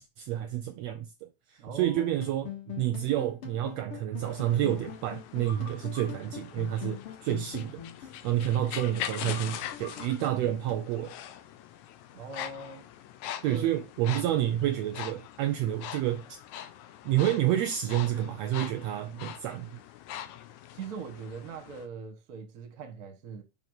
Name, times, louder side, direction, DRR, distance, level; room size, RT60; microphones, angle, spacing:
voice 1, 0.0-2.5 2.8-7.8 8.2-11.1 13.4-16.4 17.0-19.8, right 12 dB, 75° right, 1.6 m, -29 dB
voice 2, 1.6-2.1 2.7-2.8 12.1-12.8 13.5-13.8 20.7-23.4, right 5 dB, 45° right, 1.2 m, -41 dB
sound 1, 1.8-10.7, left 8 dB, 50° left, 2.5 m, -43 dB
sound 2, 4.2-21.9, left 11 dB, 80° left, 2.1 m, -43 dB
5.6 x 5.3 x 6.3 m
omnidirectional pair, 3.5 m